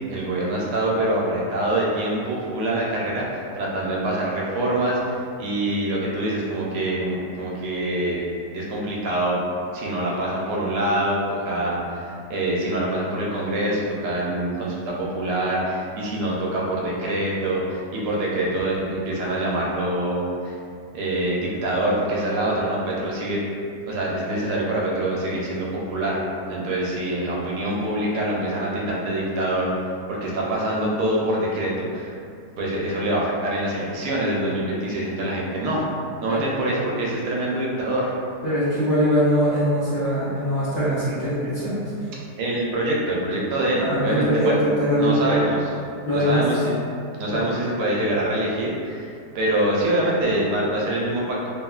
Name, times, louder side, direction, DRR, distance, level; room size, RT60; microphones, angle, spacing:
voice 1, 0.1-8.2 8.5-9.4 9.7-20.6 20.9-23.4 23.9-29.7 30.1-32.1 32.6-35.8 36.1-38.1 42.4-44.6 45.0-45.6 46.1-46.8 47.2-51.5, right 1 dB, 80° right, -4 dB, 1.1 m, -25 dB
voice 2, 38.4-41.9 43.8-45.4 46.0-46.5 47.3-47.5, equal, 55° left, -12 dB, 0.9 m, -22 dB
3.2 x 2.1 x 2.3 m, 2.4 s
omnidirectional pair, 1.8 m